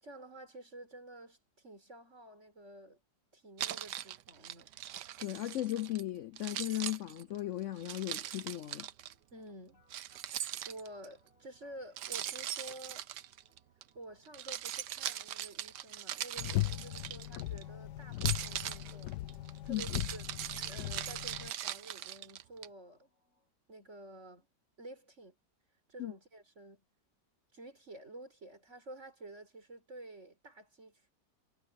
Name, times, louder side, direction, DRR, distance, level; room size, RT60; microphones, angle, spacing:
voice 1, 0.0-3.0 3.3-4.7 9.3-9.8 10.3-13.1 13.9-19.2 19.6-20.2 20.6-23.1 23.7-24.5 24.8-25.3 25.9-26.8 27.5-31.1, right 1 dB, 40° right, 4.9 m, -50 dB
Keys jangling, 3.6-6.0 6.4-9.1 9.9-11.1 12.0-13.8 14.3-17.6 18.1-22.7, right 12 dB, 75° right, 1.4 m, -40 dB
voice 2, 5.2-8.9 19.7-19.8 26.0-26.1, left 14 dB, 90° left, 0.6 m, -36 dB
sound 1, 7.8-23.5, left 1 dB, 45° left, 6.1 m, -72 dB
sound 2, 16.4-21.5, left 16 dB, 75° left, 1.2 m, -38 dB
omnidirectional pair, 1.9 m